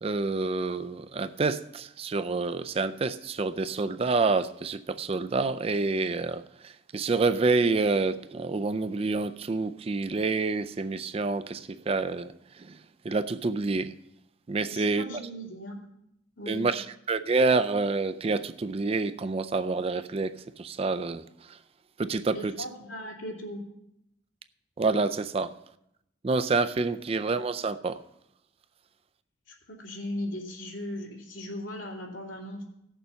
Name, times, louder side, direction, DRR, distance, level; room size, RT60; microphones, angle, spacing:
voice 1, 0.0-12.8 13.0-13.9 14.5-15.0 16.5-21.6 22.0-22.6 24.8-25.5 26.2-28.0, right 3 dB, 30° right, 0.4 m, -28 dB
voice 2, 14.7-15.8 16.4-16.7 22.3-23.7 29.5-32.6, left 1 dB, 85° left, 2.8 m, -38 dB
15.5 x 6.8 x 5.7 m
head